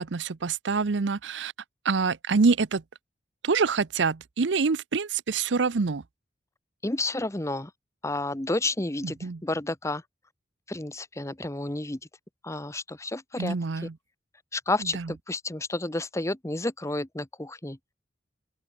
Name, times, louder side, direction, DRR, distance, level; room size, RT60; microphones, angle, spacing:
voice 1, 0.0-1.5 1.8-2.8 3.4-6.0 9.0-9.4 13.4-13.9 14.8-15.1, right 4 dB, 80° right, 0.7 m, -26 dB
voice 2, 6.8-7.7 8.0-10.0 10.7-12.0 12.4-13.6 14.5-17.8, left 2 dB, 15° left, 1.0 m, -31 dB
open air
head